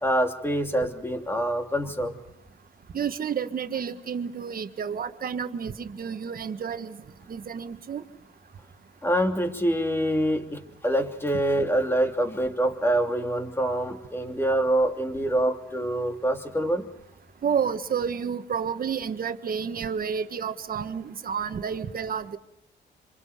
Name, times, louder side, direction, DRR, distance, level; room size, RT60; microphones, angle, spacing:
voice 1, 0.0-2.2 9.0-16.9, right 1 dB, 10° left, 4 dB, 3.0 m, -25 dB
voice 2, 2.9-7.0 7.3-8.0 17.4-22.4, right 7 dB, 45° right, 9 dB, 1.7 m, -30 dB
26.5 x 26.5 x 5.2 m, 0.80 s
cardioid pair, 90°, 20 cm